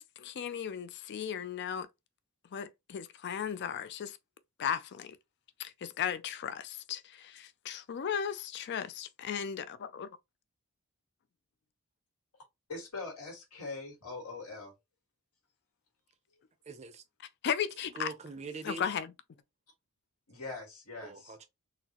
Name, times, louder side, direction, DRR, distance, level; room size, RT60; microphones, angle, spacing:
voice 1, 0.0-1.9 2.5-4.2 4.6-5.2 5.6-10.1 17.4-18.1 18.6-19.1, left 8 dB, 50° left, 0.4 m, -36 dB
voice 2, 12.7-14.7 20.3-21.4, left 3 dB, 80° left, 1.5 m, -42 dB
voice 3, 16.7-17.0 17.9-18.9 21.0-21.4, right 3 dB, 30° right, 0.5 m, -43 dB
3.9 x 2.0 x 2.8 m
head